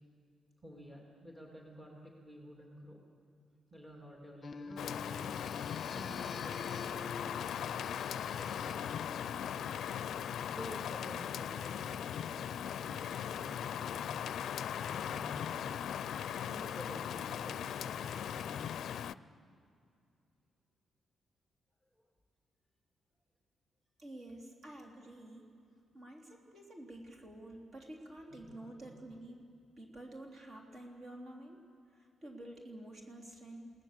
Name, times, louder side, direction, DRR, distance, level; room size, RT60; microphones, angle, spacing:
voice 1, 0.6-3.0 3.7-5.5 5.9-7.8 8.4-9.5 10.5-14.2 14.9-15.8 16.5-18.6 28.3-28.9, equal, 10° right, -2 dB, 2.9 m, -51 dB
sound 1, 4.4-10.4, left 3 dB, 35° left, 1.0 m, -49 dB
Rain, 4.8-19.1, left 9 dB, 65° left, 0.5 m, -39 dB
voice 2, 24.0-25.5 25.9-29.5 29.8-31.6 31.9-33.7, right 1 dB, 40° right, 0 dB, 3.5 m, -49 dB
30.0 x 18.0 x 7.5 m, 2.4 s
cardioid pair, 155°, 0 cm